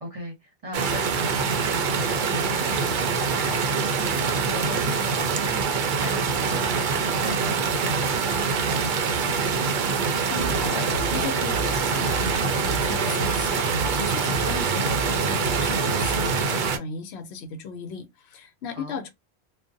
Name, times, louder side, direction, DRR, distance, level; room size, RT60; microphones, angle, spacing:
voice 1, 0.0-9.9 18.7-19.0, equal, 35° right, 0.8 m, -39 dB
sound 1, 0.7-16.8, right 5 dB, 60° right, 0.6 m, -25 dB
voice 2, 10.3-19.1, left 5 dB, 80° left, 0.8 m, -36 dB
sound 2, 10.3-16.4, right 3 dB, 60° left, 1.1 m, -33 dB
2.4 x 2.1 x 2.5 m
omnidirectional pair, 1.1 m